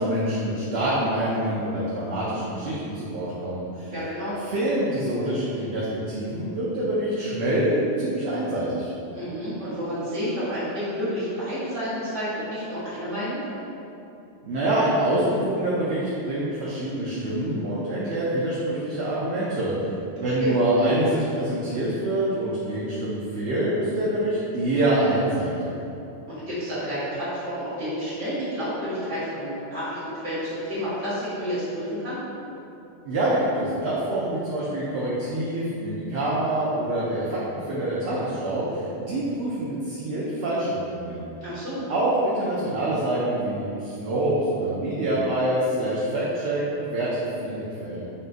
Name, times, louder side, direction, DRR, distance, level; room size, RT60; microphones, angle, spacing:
voice 1, 0.0-3.9 4.5-8.9 14.4-25.7 33.1-41.3 41.9-48.1, right 1 dB, 70° right, -8 dB, 0.9 m, -26 dB
voice 2, 3.9-4.4 9.1-13.4 20.2-20.5 26.3-32.2 41.4-41.9, equal, 85° right, -12 dB, 1.8 m, -30 dB
5.4 x 2.6 x 2.5 m, 2.8 s
omnidirectional pair, 1.2 m